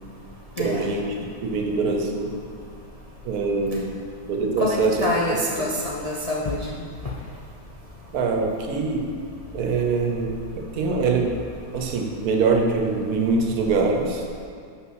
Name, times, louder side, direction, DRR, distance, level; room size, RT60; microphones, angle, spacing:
voice 1, 0.6-2.3 3.2-4.0 4.3-5.1 5.6-5.7 8.1-9.2 9.5-11.4 11.7-14.3, right 4 dB, 80° right, 2 dB, 1.3 m, -24 dB
voice 2, 4.6-6.7, left 1 dB, 45° left, -3 dB, 0.5 m, -26 dB
5.7 x 5.3 x 6.2 m, 2.2 s
omnidirectional pair, 1.6 m